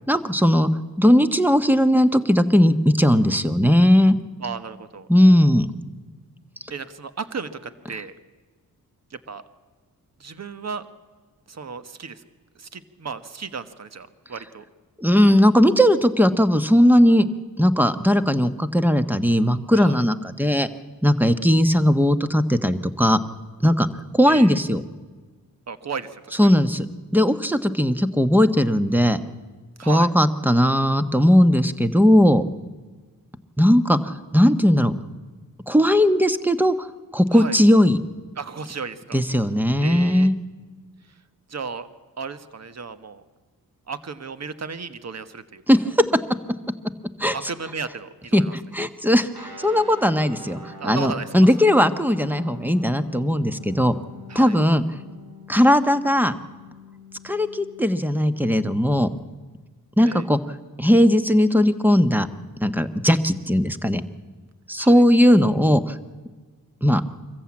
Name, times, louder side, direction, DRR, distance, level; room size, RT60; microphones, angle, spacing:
voice 1, 0.1-0.7 1.0-4.1 5.1-5.7 15.0-17.3 17.6-20.7 21.0-23.2 23.6-23.9 24.1-24.8 26.4-26.9 27.1-29.2 29.9-32.4 33.6-34.9 35.7-36.7 37.1-38.0 39.1-40.3 45.7-46.0 47.2-47.3 48.3-53.9 54.3-54.8 55.5-56.3 57.2-59.1 60.0-60.4 60.8-62.3 62.6-64.0 64.7-65.9 66.8-67.0, equal, 5° right, 11 dB, 1.2 m, -18 dB
voice 2, 4.4-5.1 6.7-8.1 9.1-9.4 10.2-10.9 11.5-12.2 12.6-14.6 19.7-20.0 24.3-24.6 25.7-26.4 29.8-30.1 37.3-37.6 38.4-39.2 39.8-40.3 41.5-41.9 42.2-43.2 43.9-45.6 47.3-48.5 50.8-51.6 54.3-54.6 60.0-60.3 64.8-65.0, right 5 dB, 45° right, 12 dB, 1.3 m, -34 dB
Guitar, 49.3-59.2, left 3 dB, 90° right, 4.3 m, -44 dB
23.5 x 14.5 x 8.7 m, 1.4 s
cardioid pair, 65°, 36 cm